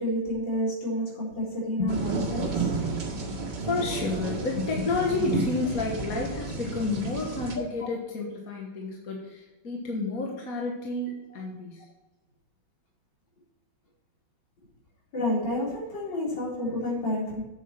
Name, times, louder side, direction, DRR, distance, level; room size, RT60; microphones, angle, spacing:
voice 1, 0.0-2.7 15.1-17.4, left 1 dB, 65° left, -5 dB, 4.7 m, -29 dB
sound 1, 1.9-7.6, right 4 dB, 60° right, 2.6 m, -32 dB
voice 2, 3.1-11.9, left 3 dB, 50° left, -1 dB, 1.8 m, -30 dB
8.7 x 8.1 x 4.5 m, 1.1 s
omnidirectional pair, 2.1 m